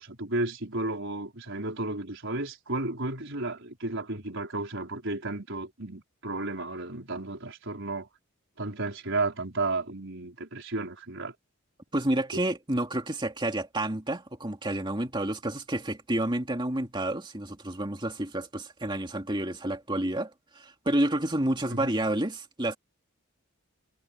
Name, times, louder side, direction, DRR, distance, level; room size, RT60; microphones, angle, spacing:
voice 1, 0.0-8.1 8.6-11.3 12.3-12.4 21.7-21.9, right 2 dB, 55° right, 5.3 m, -33 dB
voice 2, 11.9-22.8, right 1 dB, 20° right, 2.7 m, -29 dB
head